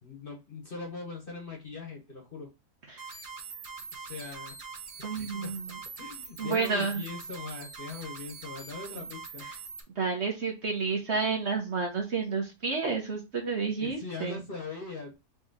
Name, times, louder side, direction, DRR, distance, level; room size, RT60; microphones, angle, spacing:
voice 1, 0.0-2.5 3.9-4.6 5.1-5.6 6.0-9.5 13.8-15.1, left 4 dB, 40° left, 0 dB, 1.3 m, -41 dB
sound 1, 3.0-9.8, right 5 dB, 80° right, 1.7 m, -43 dB
voice 2, 5.0-5.7 6.4-7.0 9.0-9.1 10.0-14.4, right 4 dB, 45° right, 1 dB, 1.3 m, -30 dB
4.2 x 3.0 x 3.7 m, 0.26 s
omnidirectional pair, 1.7 m